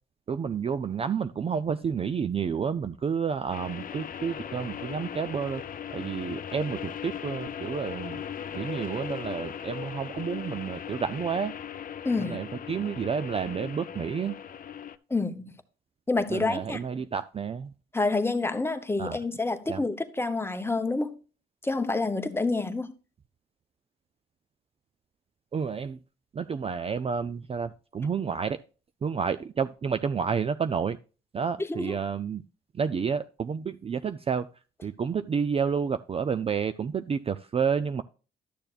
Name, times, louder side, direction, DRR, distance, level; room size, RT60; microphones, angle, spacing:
voice 1, 0.3-5.6 5.9-8.2 8.5-11.5 12.2-14.3 16.3-17.7 19.0-19.2 19.7-19.8 25.5-26.0 26.3-28.6 29.0-31.0 31.3-32.4 32.7-34.5 34.8-38.0, right 6 dB, 30° right, 0.4 m, -30 dB
sound 1, 3.5-15.0, left 9 dB, 45° left, 0.5 m, -38 dB
voice 2, 12.0-12.5 15.1-15.5 16.1-16.8 17.9-21.1 21.6-22.9 31.6-32.0, left 3 dB, 10° left, 0.8 m, -28 dB
12.0 x 6.7 x 2.4 m
cardioid pair, 90°, 20 cm